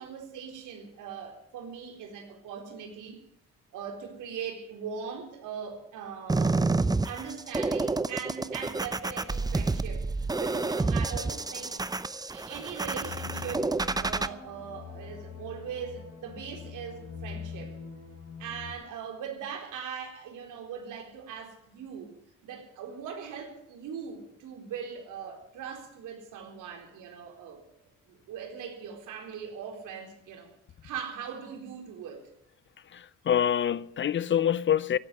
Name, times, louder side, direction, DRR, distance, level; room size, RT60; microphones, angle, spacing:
voice 1, 0.0-3.2 3.7-11.8 12.3-17.7 18.4-22.1 22.4-27.6 28.1-30.5 30.8-32.2, right 7 dB, 85° right, 4.1 m, -40 dB
sound 1, 6.3-14.3, right 3 dB, 15° right, 0.7 m, -29 dB
sound 2, 13.0-18.7, left 7 dB, 60° left, 5.6 m, -43 dB
voice 2, 32.8-35.0, left 9 dB, 40° left, 0.5 m, -26 dB
16.0 x 8.3 x 9.8 m
cardioid pair, 90°, 30 cm